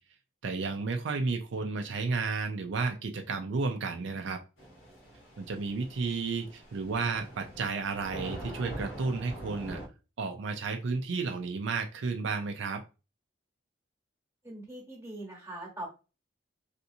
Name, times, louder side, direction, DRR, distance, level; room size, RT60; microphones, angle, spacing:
voice 1, 0.4-4.4 5.4-9.8 10.2-12.8, right 4 dB, 70° right, 5 dB, 0.4 m, -32 dB
Thunder / Rain, 4.6-9.9, right 1 dB, 85° left, 1.3 m, -44 dB
voice 2, 14.4-15.9, right 1 dB, 15° right, -2 dB, 1.1 m, -41 dB
3.3 x 2.8 x 2.7 m, 0.30 s
head